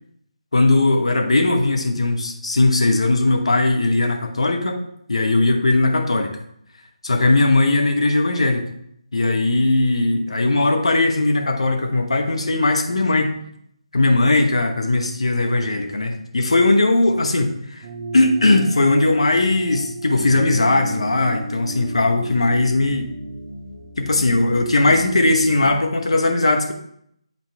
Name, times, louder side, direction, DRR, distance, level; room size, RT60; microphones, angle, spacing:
voice 1, 0.5-4.8 5.1-6.4 7.0-8.6 9.1-13.3 13.9-17.8 18.1-23.1 24.0-26.7, left 2 dB, 65° left, 5 dB, 1.0 m, -18 dB
sound 1, 17.8-25.8, right 1 dB, 35° right, 0.9 m, -34 dB
8.5 x 4.1 x 3.4 m, 0.72 s
figure-of-eight pair, 150°, 3 cm